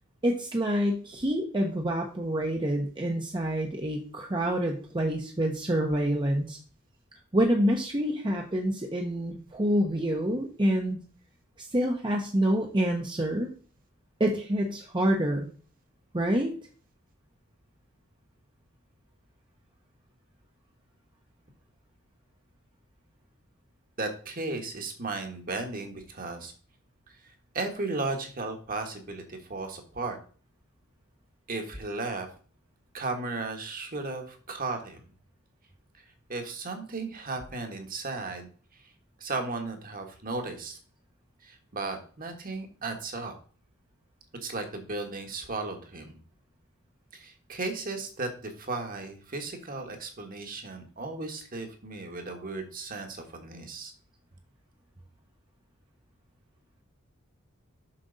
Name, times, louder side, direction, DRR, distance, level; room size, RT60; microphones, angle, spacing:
voice 1, 0.2-6.6 7.3-11.0 11.6-13.5 14.2-15.5 16.1-16.5, equal, 20° right, 1 dB, 0.8 m, -27 dB
voice 2, 24.0-26.5 27.2-30.2 31.5-32.3 32.9-35.0 36.3-38.5 39.2-40.8 41.4-43.3 44.4-46.2 47.1-53.9, right 3 dB, 40° right, 5 dB, 1.4 m, -35 dB
7.5 x 6.1 x 4.0 m, 0.42 s
head